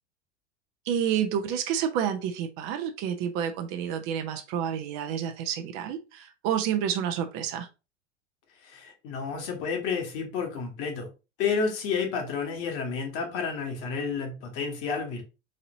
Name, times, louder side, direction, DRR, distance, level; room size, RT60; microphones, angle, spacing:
voice 1, 0.8-7.7, right 9 dB, 40° right, 0.7 m, -29 dB
voice 2, 8.6-11.1 11.4-15.2, left 5 dB, 40° left, 1.5 m, -30 dB
4.2 x 3.8 x 2.6 m
figure-of-eight pair, 80°, 34 cm